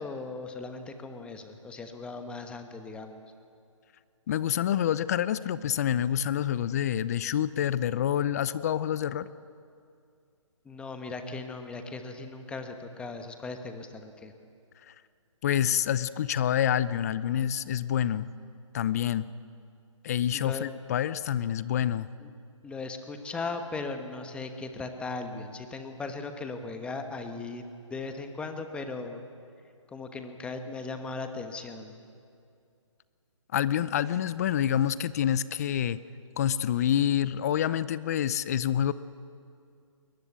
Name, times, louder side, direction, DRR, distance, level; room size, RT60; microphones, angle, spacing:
voice 1, 0.0-3.2 10.6-14.3 20.3-20.7 22.2-22.3 22.6-27.6 27.9-29.2 29.9-32.0, left 3 dB, 5° left, 6 dB, 1.2 m, -38 dB
voice 2, 4.3-9.3 15.4-18.3 18.7-19.2 20.0-22.1 33.5-36.0 36.4-38.9, left 10 dB, 30° left, 17 dB, 0.5 m, -27 dB
21.5 x 21.0 x 8.2 m, 2.4 s
figure-of-eight pair, 150°, 17 cm